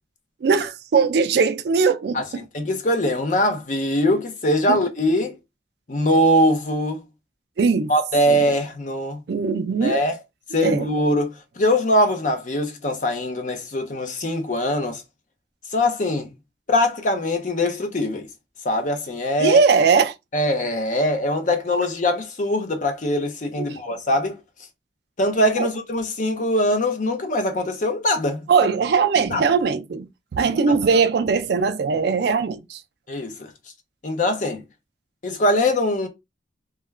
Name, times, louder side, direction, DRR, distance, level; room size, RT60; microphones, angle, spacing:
voice 1, 0.4-2.4 4.7-4.8 7.6-7.9 8.3-8.5 9.3-10.1 10.6-10.9 19.4-20.1 23.6-23.8 25.6-25.7 28.5-32.8, right 5 dB, 60° right, 0.3 m, -20 dB
voice 2, 2.5-5.4 5.9-7.0 7.9-9.2 9.8-10.1 10.5-15.0 15.7-16.3 16.7-18.3 18.6-19.6 20.3-24.4 25.2-28.4 29.3-29.4 30.7-30.8 33.1-33.5 34.0-34.6 35.2-36.1, left 1 dB, 45° left, 0.6 m, -22 dB
2.3 x 2.2 x 3.1 m
head